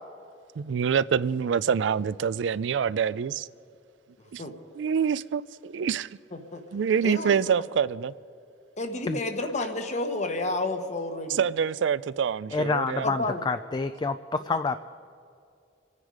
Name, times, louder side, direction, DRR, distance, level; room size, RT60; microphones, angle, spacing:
voice 1, 0.6-3.5 4.3-4.4 4.8-6.1 6.7-8.1 11.3-13.1, right 7 dB, 80° right, 0.4 m, -26 dB
voice 2, 6.3-6.6 7.0-7.6 8.8-11.4 13.0-13.4, left 2 dB, 40° left, 1.3 m, -31 dB
voice 3, 12.5-14.8, left 4 dB, 25° left, 0.3 m, -28 dB
26.0 x 9.7 x 5.0 m
head